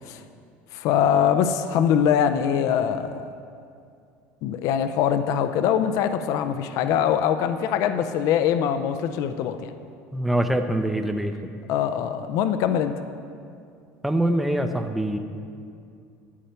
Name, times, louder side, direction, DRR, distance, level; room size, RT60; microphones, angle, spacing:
voice 1, 0.7-3.3 4.4-9.7 11.7-12.9, left 8 dB, 60° left, 9 dB, 0.5 m, -23 dB
voice 2, 10.1-11.3 14.0-15.2, right 1 dB, ahead, 6 dB, 0.5 m, -24 dB
10.0 x 8.5 x 4.4 m, 2.4 s
supercardioid pair, 125°, 6 cm